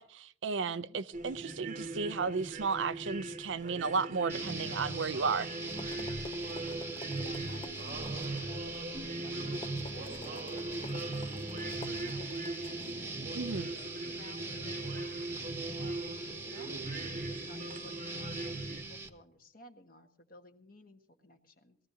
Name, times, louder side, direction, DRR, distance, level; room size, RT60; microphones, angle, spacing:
voice 1, 0.0-5.5 13.3-13.7, right 5 dB, 80° right, 0.6 m, -33 dB
voice 2, 0.6-1.0 6.4-6.7 7.2-10.9 11.3-15.2 15.8-21.8, left 1 dB, 50° left, 1.5 m, -56 dB
sound 1, 1.1-18.8, right 2 dB, 45° right, 1.0 m, -41 dB
sound 2, 4.3-19.1, right 2 dB, 15° right, 1.0 m, -40 dB
sound 3, 5.3-14.2, left 2 dB, 30° left, 0.6 m, -51 dB
21.0 x 14.5 x 2.8 m
head